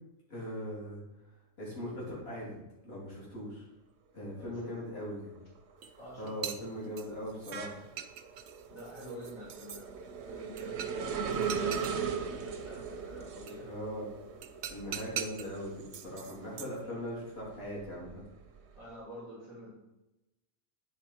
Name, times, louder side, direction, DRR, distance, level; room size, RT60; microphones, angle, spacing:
voice 1, 0.3-3.7 4.1-5.4 6.2-7.8 13.6-14.1 14.7-18.2, equal, 45° left, -7 dB, 3.1 m, -40 dB
voice 2, 4.4-5.0 6.0-6.3 8.7-9.9 10.2-13.7 18.7-19.7, equal, 75° left, -7 dB, 3.0 m, -48 dB
sound 1, 4.6-5.0 5.4-16.6 17.1-18.8, right 6 dB, 60° right, 0.9 m, -39 dB
sound 2, 5.8-5.9 6.3-7.6 8.0-9.8 10.6-11.1 11.3-12.0 13.5-13.6 14.4-15.5 15.9-16.8, right 9 dB, 90° right, 1.1 m, -41 dB
9.3 x 4.0 x 4.3 m, 0.95 s
omnidirectional pair, 1.4 m